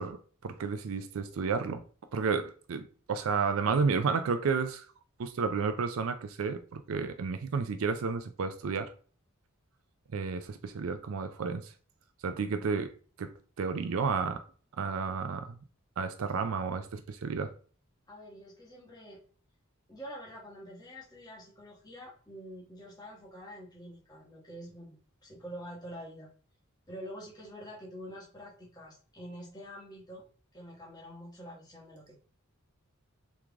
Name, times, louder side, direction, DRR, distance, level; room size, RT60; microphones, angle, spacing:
voice 1, 0.0-1.8 2.1-4.9 5.2-8.9 10.1-11.7 12.2-12.9 13.2-14.5 14.8-15.6 16.0-17.5, right 5 dB, 70° right, 0.4 m, -31 dB
voice 2, 18.1-19.2 19.9-25.0 25.2-26.3 26.9-30.2 30.5-32.2, equal, 20° left, 1.2 m, -46 dB
3.6 x 3.2 x 3.5 m
head